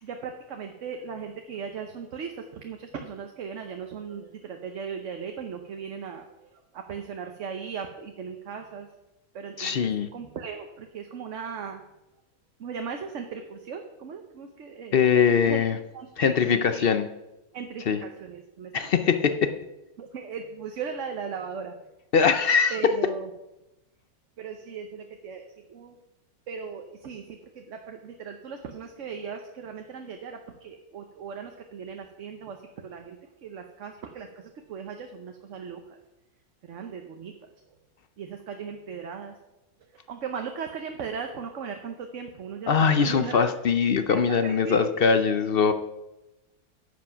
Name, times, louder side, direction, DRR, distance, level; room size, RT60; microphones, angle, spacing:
voice 1, 0.0-8.9 9.3-11.8 12.6-15.0 15.3-15.6 15.9-16.9 17.5-18.9 20.0-21.7 22.7-23.3 24.4-26.0 26.5-32.6 32.8-33.2 33.4-34.3 34.7-36.0 36.6-37.3 38.2-39.3 40.1-43.4 44.1-44.9, right 6 dB, 60° right, 4 dB, 1.1 m, -37 dB
voice 2, 9.6-10.1 14.9-15.8 16.2-17.0 17.9-18.0 18.7-19.5 22.1-22.9 42.7-45.7, left 6 dB, 55° left, 10 dB, 0.6 m, -22 dB
10.5 x 7.4 x 5.8 m, 0.97 s
omnidirectional pair, 1.6 m